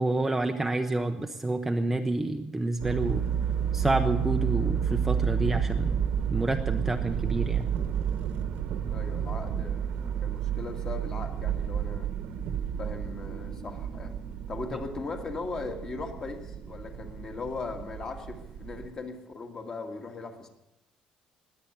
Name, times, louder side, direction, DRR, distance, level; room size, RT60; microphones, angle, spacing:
voice 1, 0.0-3.2 3.7-5.9 6.3-7.7, right 2 dB, 10° right, 4 dB, 0.7 m, -28 dB
sound 1, 2.8-18.9, right 8 dB, 60° right, 1.3 m, -31 dB
voice 2, 8.9-12.1 12.8-14.2 14.5-20.5, left 3 dB, 30° left, 5 dB, 1.8 m, -38 dB
20.5 x 8.8 x 8.0 m, 0.91 s
cardioid pair, 180°, 2 cm